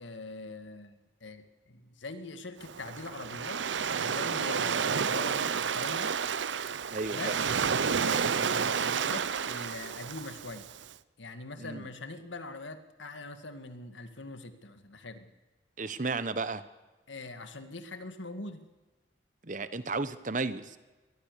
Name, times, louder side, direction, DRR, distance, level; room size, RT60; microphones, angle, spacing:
voice 1, 0.0-3.6 4.0-6.1 7.1-7.4 8.0-10.7 11.2-15.3 17.1-18.7, left 2 dB, 90° left, 9 dB, 2.0 m, -42 dB
Waves surf, 2.6-10.8, right 6 dB, 80° right, 0.7 m, -30 dB
voice 2, 6.9-7.4 11.6-11.9 15.8-16.6 19.4-20.8, right 3 dB, 45° right, 13 dB, 1.1 m, -33 dB
22.5 x 19.0 x 6.8 m, 1.2 s
head